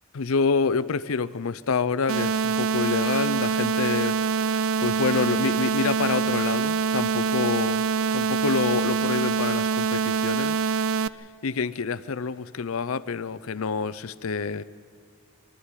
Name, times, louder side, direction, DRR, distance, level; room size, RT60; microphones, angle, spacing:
voice 1, 0.1-7.8 8.1-10.6 11.4-14.6, left 5 dB, 90° left, 17 dB, 0.6 m, -27 dB
sound 1, 2.1-11.1, right 5 dB, 75° right, 0.5 m, -25 dB
23.5 x 12.5 x 9.8 m, 2.2 s
head